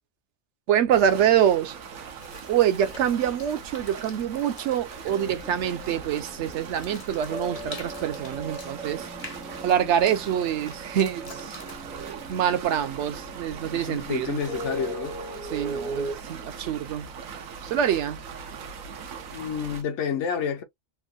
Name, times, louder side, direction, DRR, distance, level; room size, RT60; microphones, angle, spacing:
voice 1, 0.7-1.7 2.5-9.1 9.6-11.6 11.8-14.4 15.5-17.1 17.6-18.2, right 9 dB, 65° right, 0.9 m, -25 dB
sound 1, 0.9-19.8, right 6 dB, 85° right, 1.1 m, -41 dB
sound 2, 2.0-13.2, left 3 dB, 35° left, 0.6 m, -48 dB
sound 3, 5.1-16.1, right 2 dB, 5° right, 0.4 m, -39 dB
voice 2, 13.7-15.2 19.3-20.6, left 7 dB, 65° left, 0.9 m, -29 dB
3.5 x 2.2 x 2.4 m
omnidirectional pair, 1.4 m